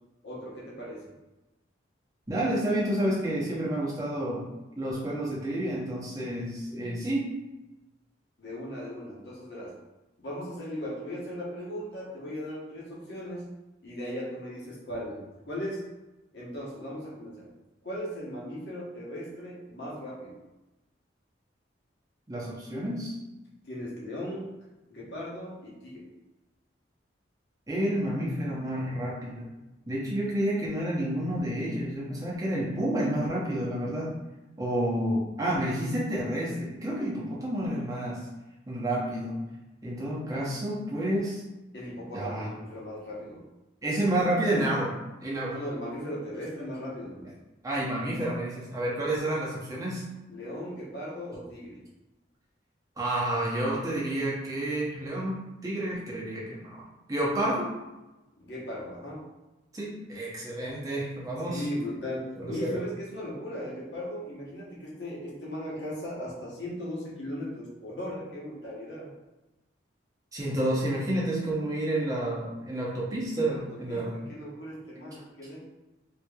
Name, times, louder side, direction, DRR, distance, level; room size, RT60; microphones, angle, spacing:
voice 1, 0.2-1.1 8.4-9.8 10.2-13.5 13.8-15.8 16.3-17.5 17.8-20.4 23.7-24.6 24.9-26.1 41.7-43.4 45.5-47.3 47.7-48.1 50.3-51.8 58.4-59.3 61.4-69.1 73.4-75.6, equal, 65° left, -6 dB, 1.0 m, -38 dB
voice 2, 2.3-4.5 4.8-7.2 22.3-23.1 27.7-29.5 29.9-34.2 34.6-38.2 38.7-39.4 39.8-41.4 42.1-42.5 43.8-44.9 45.2-45.6 47.6-50.0 53.0-56.8 57.1-57.7 59.7-61.7 62.4-62.8 70.3-74.2, right 1 dB, 20° right, -6 dB, 0.7 m, -30 dB
3.3 x 2.9 x 2.3 m, 1.0 s
head